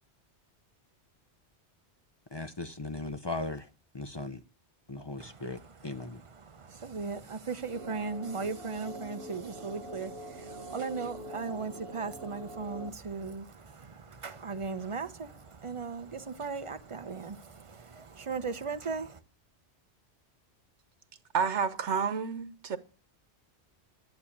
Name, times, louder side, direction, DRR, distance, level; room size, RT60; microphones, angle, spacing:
voice 1, 2.3-3.7 3.9-4.4 4.9-6.2, left 2 dB, 30° left, 0.5 m, -38 dB
voice 2, 5.2-19.2, right 4 dB, 30° right, 0.7 m, -38 dB
sound 1, 7.7-12.9, equal, 60° right, 1.2 m, -44 dB
voice 3, 21.3-22.8, right 6 dB, 85° right, 1.3 m, -30 dB
11.5 x 8.4 x 8.5 m
omnidirectional pair, 1.2 m